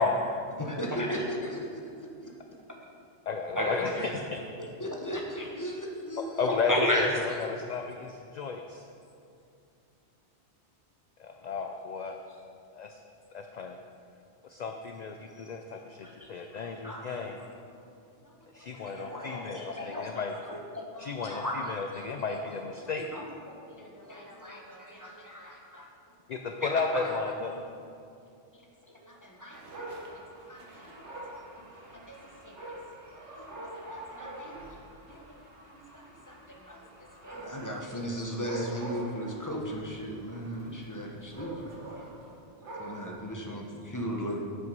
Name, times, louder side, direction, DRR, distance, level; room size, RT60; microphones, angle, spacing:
voice 1, 0.0-0.4 0.9-1.5 3.5-4.4 4.9-5.5 6.5-7.7 16.0-16.3 16.6-17.5 18.7-20.8 21.2-22.5 23.0-23.5 24.1-25.9 26.6-27.6 29.4-29.9 38.5-38.8, left 1 dB, 20° right, -1 dB, 0.7 m, -35 dB
voice 2, 0.6-2.3 4.8-6.5 16.5-16.7 18.2-18.5 18.9-19.7 20.9-21.1 23.7-25.9 28.5-28.7 29.0-29.6 29.9-31.7 31.9-32.8 33.4-34.8 35.1-35.4 35.7-42.1 42.6-44.4, equal, 20° left, -1 dB, 0.9 m, -39 dB
voice 3, 3.3-3.9 6.4-8.8 11.2-12.2 12.7-13.0 13.3-13.8 14.4-17.4 18.5-20.3 21.0-23.0 26.3-27.6, left 4 dB, 60° left, 4 dB, 0.4 m, -33 dB
Dog, 29.5-43.3, right 1 dB, 75° right, 1.5 m, -45 dB
8.0 x 6.0 x 5.3 m, 2.5 s
omnidirectional pair, 1.2 m